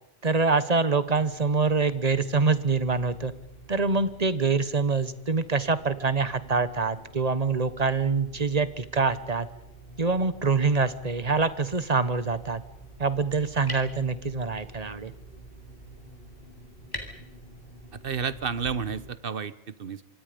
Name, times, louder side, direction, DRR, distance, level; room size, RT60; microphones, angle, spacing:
voice 1, 0.2-3.3 3.7-9.5 10.0-12.6 13.0-15.1, right 4 dB, 40° right, 14 dB, 1.2 m, -25 dB
sound 1, 1.1-19.1, right 2 dB, 55° left, 6.5 m, -49 dB
sound 2, 10.7-18.7, left 1 dB, 20° left, 3.6 m, -46 dB
voice 2, 17.9-20.0, right 6 dB, 60° right, 15 dB, 1.2 m, -31 dB
26.5 x 24.5 x 5.2 m, 0.85 s
omnidirectional pair, 1.1 m